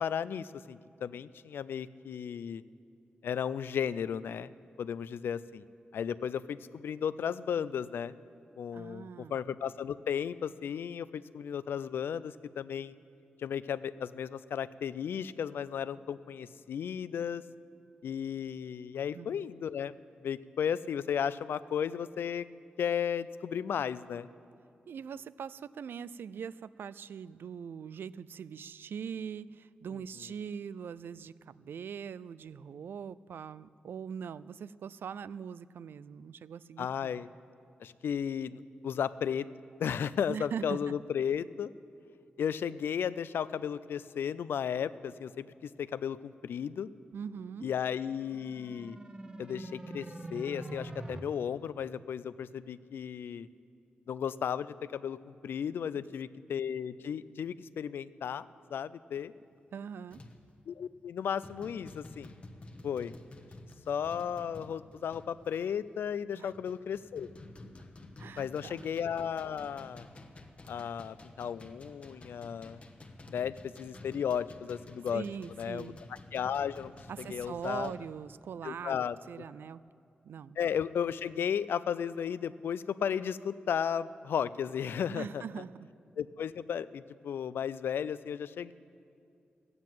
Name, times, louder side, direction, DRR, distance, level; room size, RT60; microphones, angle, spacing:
voice 1, 0.0-2.6 3.2-4.5 4.8-5.6 5.9-8.1 8.6-12.9 13.4-17.4 18.0-19.9 20.2-22.5 22.8-24.3 36.8-37.3 37.8-39.5 39.8-41.7 42.4-46.9 47.6-49.0 49.4-50.1 50.3-53.5 54.1-59.3 60.7-62.3 62.8-63.1 63.9-67.3 68.4-70.0 70.7-72.8 73.3-75.2 75.6-75.9 76.3-76.9 77.2-77.9 78.6-79.2 80.6-85.4 86.2-88.7, left 8 dB, 90° left, 16 dB, 0.4 m, -34 dB
voice 2, 8.7-9.5 19.1-19.4 24.9-37.3 40.3-40.9 47.1-47.7 59.7-60.2 66.4-66.5 68.2-68.9 75.1-76.0 77.1-79.0 79.3-79.8 80.2-80.6 85.1-85.9, right 7 dB, 75° right, 18 dB, 0.3 m, -42 dB
sound 1, 48.0-51.2, right 2 dB, 25° right, 0.9 m, -44 dB
sound 2, 59.1-59.4 60.1-60.5 60.9-61.1 61.4-65.6 66.1-78.0, left 2 dB, 35° left, 1.1 m, -51 dB
15.0 x 9.5 x 7.5 m, 2.6 s
wide cardioid pair, 110°, 4 cm